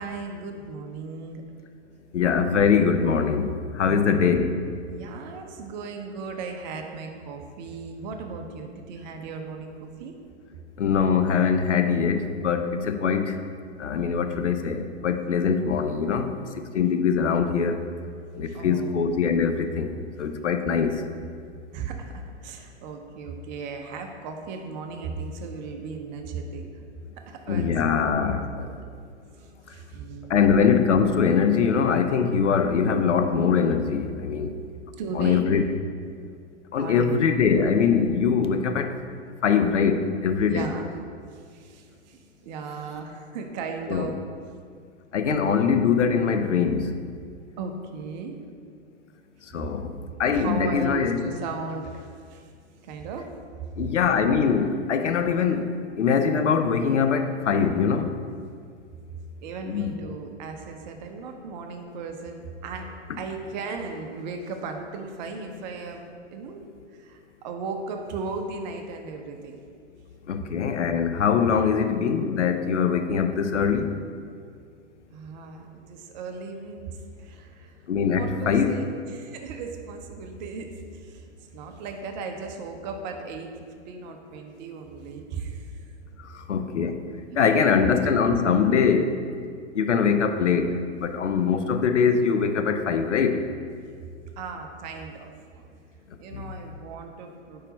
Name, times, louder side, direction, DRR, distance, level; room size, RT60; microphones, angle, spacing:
voice 1, 0.0-1.4 3.9-4.2 4.9-10.2 18.5-18.9 21.7-26.6 27.3-28.7 29.4-30.5 35.0-35.5 36.8-37.1 40.5-40.8 41.3-44.2 47.6-48.3 49.6-49.7 50.3-52.5 52.8-53.3 59.4-62.9 63.2-69.6 75.1-77.7 78.2-81.2 81.5-85.7 87.6-87.8 94.4-95.7 96.2-97.7, right 4 dB, 40° right, 4 dB, 0.7 m, -36 dB
voice 2, 2.1-4.6 10.8-13.4 13.8-17.8 18.4-19.9 20.2-21.0 27.5-28.4 30.3-34.5 35.2-35.6 36.7-38.9 39.4-40.7 43.9-44.1 45.1-46.9 49.5-51.2 53.8-55.7 56.0-58.1 59.7-59.8 70.3-73.9 77.9-78.7 86.2-87.0 87.3-89.1 89.7-93.4 96.3-96.5, left 6 dB, 80° left, 8 dB, 0.6 m, -22 dB
4.7 x 4.4 x 5.2 m, 2.2 s
figure-of-eight pair, 105°, 35 cm